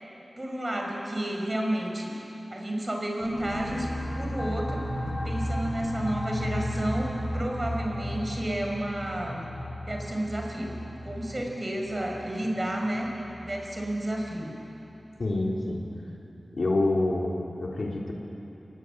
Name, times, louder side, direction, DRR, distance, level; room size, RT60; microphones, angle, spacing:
voice 1, 0.4-2.1 2.5-3.9 4.2-4.8 5.2-9.4 9.8-10.8 11.0-13.1 13.4-14.5, right 1 dB, 30° right, 0 dB, 5.5 m, -31 dB
sound 1, 3.2-14.5, equal, 35° left, 3.4 m, -35 dB
voice 2, 15.2-15.8 16.6-18.1, left 2 dB, 65° left, -2 dB, 3.9 m, -27 dB
27.5 x 19.0 x 8.3 m, 3.0 s
wide cardioid pair, 70°, 0 cm